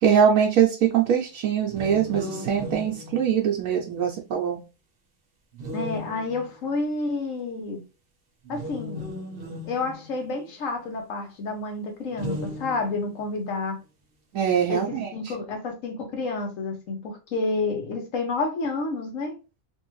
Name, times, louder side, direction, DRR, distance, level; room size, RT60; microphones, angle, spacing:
voice 1, 0.0-4.6 14.3-15.1, right 8 dB, 80° right, 1.1 m, -22 dB
sound 1, 1.7-4.0 5.5-6.7 8.4-10.7 12.1-13.2, left 1 dB, 45° right, 1.1 m, -37 dB
voice 2, 5.7-7.8 8.5-9.1 9.7-13.8 14.7-19.4, left 3 dB, 75° left, 1.3 m, -30 dB
3.4 x 2.6 x 3.0 m
omnidirectional pair, 1.4 m